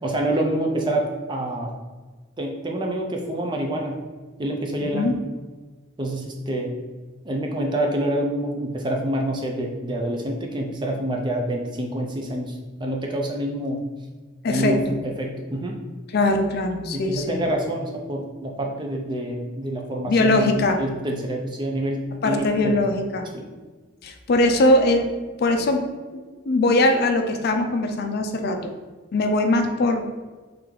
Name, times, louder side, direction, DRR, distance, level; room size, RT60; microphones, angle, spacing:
voice 1, 0.0-1.7 2.4-4.0 4.4-5.2 6.0-6.8 7.2-13.8 14.5-15.8 16.9-22.8 23.3-23.4, right 1 dB, 20° right, 1 dB, 0.4 m, -27 dB
voice 2, 4.8-5.1 14.4-15.0 16.1-17.4 20.1-20.8 22.2-23.3 24.0-25.1 25.4-25.8 26.1-28.7 29.1-30.0, left 2 dB, 50° left, 5 dB, 0.4 m, -21 dB
3.3 x 3.1 x 3.8 m, 1.3 s
head